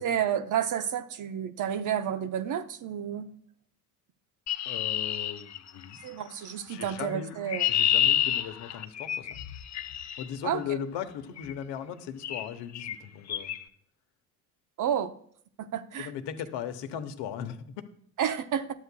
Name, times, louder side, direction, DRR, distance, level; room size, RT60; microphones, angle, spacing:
voice 1, 0.0-3.3 6.0-7.7 10.4-10.8 14.8-15.1 15.6-16.1 18.2-18.7, right 9 dB, 40° right, 11 dB, 0.7 m, -30 dB
Chirp tweet, 4.5-6.1 7.1-10.3 11.4-11.6 12.2-12.5 12.7-13.0 13.3-13.6, left 11 dB, 35° left, 0.8 m, -29 dB
voice 2, 4.7-6.0 6.7-7.4 7.7-9.4 10.2-13.6 16.0-17.6, left 9 dB, 60° left, 9 dB, 1.1 m, -37 dB
12.0 x 8.0 x 2.2 m, 0.62 s
hypercardioid pair, 65°, 47 cm